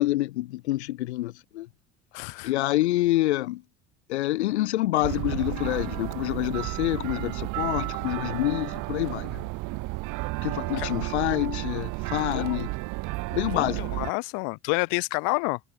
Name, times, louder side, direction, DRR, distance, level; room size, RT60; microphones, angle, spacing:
voice 1, 0.0-1.7 2.4-3.6 4.1-9.4 10.4-12.7 13.3-13.8, left 16 dB, 85° left, 2.0 m, -27 dB
voice 2, 2.1-2.5 10.8-10.9 12.3-12.6 13.5-15.6, left 39 dB, 70° left, 1.4 m, -29 dB
sound 1, 5.0-14.1, right 23 dB, 70° right, 4.2 m, -32 dB
hypercardioid pair, 80°, 33 cm